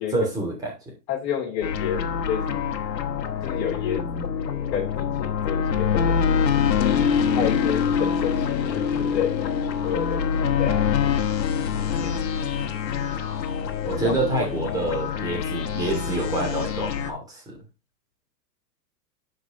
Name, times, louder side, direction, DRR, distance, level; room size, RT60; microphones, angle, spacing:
voice 1, 0.1-0.9 11.7-12.1 13.8-17.6, right 2 dB, 5° right, 2.5 m, -27 dB
voice 2, 1.1-2.7 3.4-4.3 4.7-6.1 7.3-10.3 10.6-11.1 11.8-12.1 14.0-14.1, left 8 dB, 40° left, 3.0 m, -30 dB
sound 1, 1.6-17.1, left 7 dB, 80° left, 1.6 m, -25 dB
12.0 x 5.0 x 3.0 m
hypercardioid pair, 165°, 50 cm